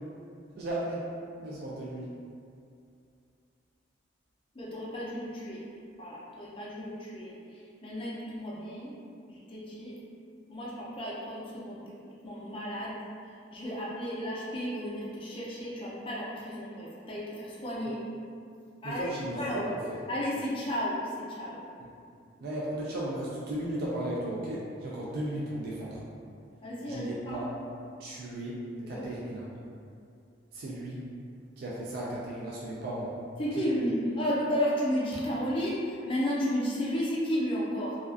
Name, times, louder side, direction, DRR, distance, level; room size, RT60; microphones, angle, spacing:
voice 1, 0.6-1.0 1.4-2.1 18.8-20.0 21.8-21.9 22.4-26.0 26.9-27.5 28.0-28.6 28.9-29.5 30.5-31.0 31.6-33.1 33.6-33.7, right 1 dB, 55° right, -6 dB, 0.3 m, -35 dB
voice 2, 4.6-5.6 6.0-7.3 7.8-8.9 9.3-9.9 10.5-11.8 12.2-13.0 13.5-18.0 18.8-19.6 20.1-21.0 21.4-21.6 26.6-27.5 28.8-29.1 33.4-38.0, equal, 30° left, -7 dB, 0.4 m, -33 dB
2.4 x 2.3 x 2.4 m, 2.4 s
head